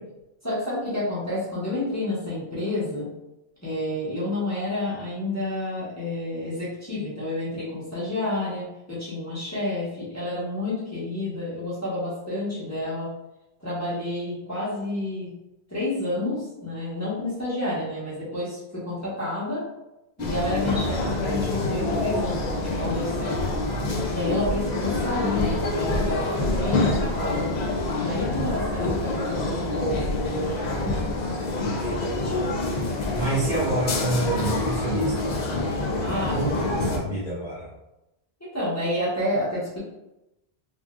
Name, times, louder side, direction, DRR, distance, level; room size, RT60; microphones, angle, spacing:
voice 1, 0.4-3.1 3.6-13.1 13.6-15.3 15.7-19.6 20.2-23.4 24.1-27.5 27.9-30.9 36.0-37.1 38.4-39.8, left 1 dB, 15° left, -11 dB, 1.2 m, -30 dB
sound 1, 20.2-37.0, left 2 dB, 55° left, 0.5 m, -26 dB
voice 2, 31.5-35.4 36.0-37.7, right 2 dB, 45° right, -9 dB, 1.4 m, -29 dB
3.6 x 2.7 x 2.3 m, 0.94 s
omnidirectional pair, 1.1 m